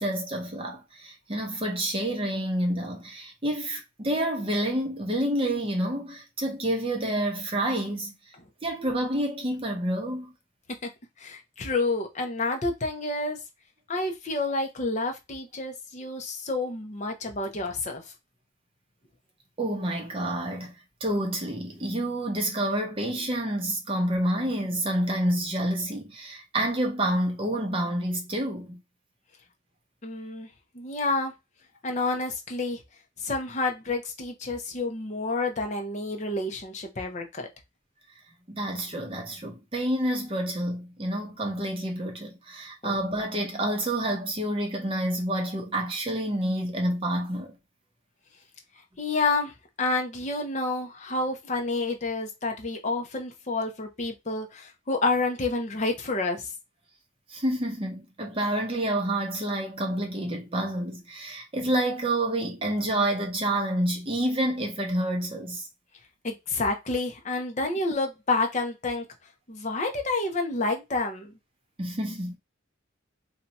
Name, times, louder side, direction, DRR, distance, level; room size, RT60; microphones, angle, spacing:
voice 1, 0.0-8.1 8.6-10.3 19.6-20.7 21.0-28.8 38.5-47.5 57.3-65.7 71.8-72.4, right 1 dB, 25° right, 0.8 m, -28 dB
voice 2, 11.2-13.4 13.9-18.0 30.0-30.5 30.7-31.3 31.8-32.8 33.2-37.5 42.8-42.9 49.0-56.5 66.2-69.1 69.5-71.3, left 3 dB, 35° left, 0.7 m, -29 dB
2.8 x 2.3 x 4.0 m
head